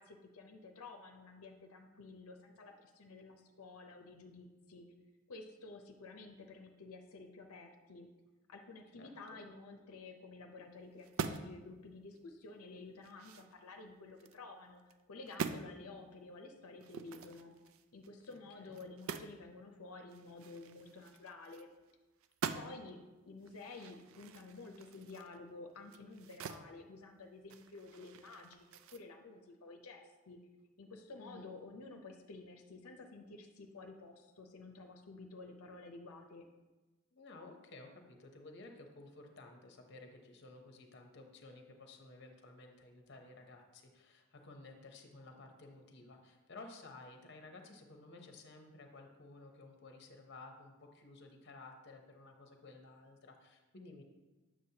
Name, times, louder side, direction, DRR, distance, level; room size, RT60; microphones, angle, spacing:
voice 1, 0.0-4.9 5.3-8.1 8.5-14.8 15.1-17.5 17.9-21.7 22.5-23.0 23.3-30.4 30.8-36.5, left 3 dB, 85° left, 4 dB, 0.6 m, -52 dB
voice 2, 8.9-9.4 18.3-18.8 22.5-22.7 31.2-31.5 37.1-54.0, left 2 dB, 50° left, 4 dB, 0.7 m, -55 dB
sound 1, 11.0-11.6 12.1-12.2 12.7-14.4 14.8-15.0 15.3-15.7 16.8-19.4 19.7-19.8 20.1-21.9 22.2-22.9 23.4-26.7 27.0-29.0, right 6 dB, 70° right, 0.3 m, -45 dB
7.8 x 6.1 x 2.8 m, 1.2 s
head